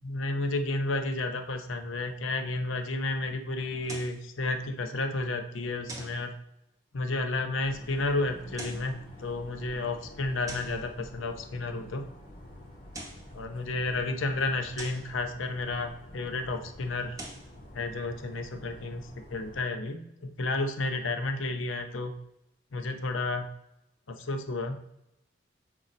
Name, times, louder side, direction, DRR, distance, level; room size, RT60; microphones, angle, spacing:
voice 1, 0.0-6.4 6.9-12.1 13.3-17.2 17.7-22.1 22.7-23.5 24.1-24.8, left 2 dB, 85° left, 6 dB, 0.8 m, -32 dB
sound 1, 3.8-4.2 5.9-6.2 8.4-8.9 10.5-10.8 12.7-13.3 14.8-15.1 17.0-17.5, right 2 dB, 15° right, 0.8 m, -43 dB
sound 2, 7.6-19.6, left 1 dB, 45° left, 1.7 m, -48 dB
6.7 x 4.5 x 4.3 m, 0.83 s
head